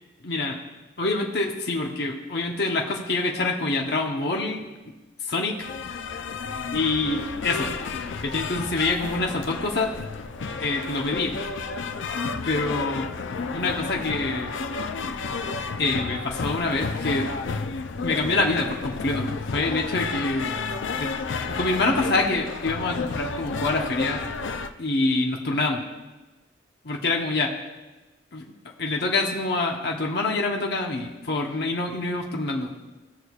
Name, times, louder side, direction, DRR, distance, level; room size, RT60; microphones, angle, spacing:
voice 1, 0.2-0.6 1.0-4.7 5.3-5.6 6.7-7.7 8.2-9.9 10.6-11.3 12.4-13.1 13.5-14.5 15.8-17.3 18.0-20.5 21.0-21.1 21.5-24.2 24.8-25.8 26.8-27.5 28.3-28.4 28.8-32.7, left 2 dB, 55° left, 0 dB, 0.9 m, -26 dB
sound 1, 5.6-24.7, left 4 dB, 75° left, 0.5 m, -31 dB
17.5 x 6.4 x 2.4 m, 1.1 s
head